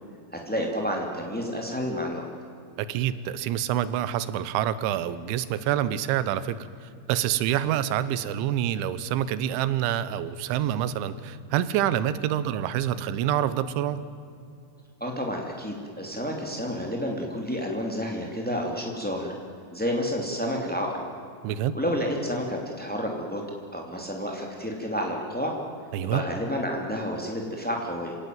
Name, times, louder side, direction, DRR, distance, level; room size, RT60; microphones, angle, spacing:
voice 1, 0.3-2.2 15.0-19.3 19.7-21.0 21.7-23.4 23.7-25.5 26.0-28.1, equal, 10° left, 0 dB, 0.4 m, -30 dB
voice 2, 2.8-14.0 21.4-21.8 25.9-26.2, right 11 dB, 80° right, 15 dB, 3.3 m, -27 dB
27.5 x 17.5 x 9.3 m, 2.4 s
omnidirectional pair, 5.5 m